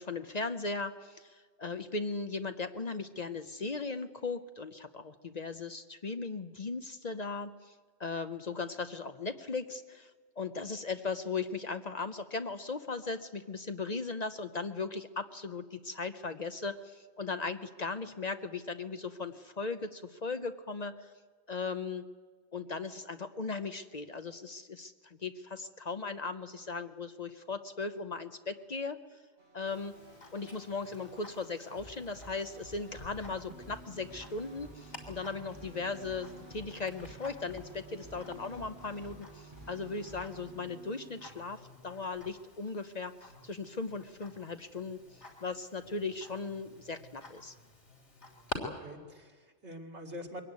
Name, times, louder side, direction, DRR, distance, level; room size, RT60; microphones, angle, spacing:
voice 1, 0.0-7.7 8.0-10.1 10.4-21.1 21.5-22.1 22.5-29.2 29.5-30.0 30.3-47.5, left 4 dB, 40° left, 9 dB, 0.8 m, -38 dB
sound 1, 29.4-40.4, equal, 50° right, 7.0 m, -54 dB
Tick-tock, 29.7-48.6, left 3 dB, 90° left, 3.7 m, -51 dB
sound 2, 33.3-41.3, right 5 dB, 20° right, 1.2 m, -54 dB
voice 2, 48.5-50.4, equal, 80° right, 1 dB, 2.9 m, -45 dB
23.0 x 17.0 x 9.5 m, 1.5 s
omnidirectional pair, 1.1 m